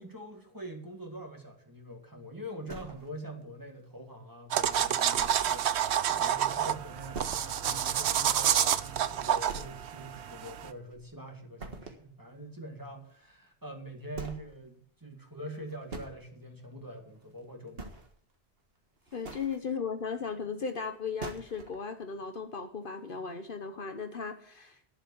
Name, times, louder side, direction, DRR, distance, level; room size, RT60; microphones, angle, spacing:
voice 1, 0.0-18.0 19.1-19.2, right 1 dB, 20° right, 2 dB, 2.1 m, -44 dB
sound 1, 2.7-3.4 3.9-4.0 4.4-4.5 5.2-5.6 5.9-6.0 6.4-6.5 7.1-7.7 8.0-8.1 8.6-8.7 9.5-10.1 10.4-11.2 11.6-12.1 13.4-13.5 14.1-14.5 15.5-16.1 17.1-17.4 17.7-18.3 19.0-19.6 20.8-20.9 21.2-21.7, right 3 dB, 65° right, 1.9 m, -43 dB
sound 2, 4.5-10.7, right 10 dB, 80° right, 0.9 m, -29 dB
voice 2, 19.1-24.8, left 5 dB, 55° left, 7 dB, 1.1 m, -36 dB
11.5 x 7.6 x 6.9 m, 0.63 s
omnidirectional pair, 1.1 m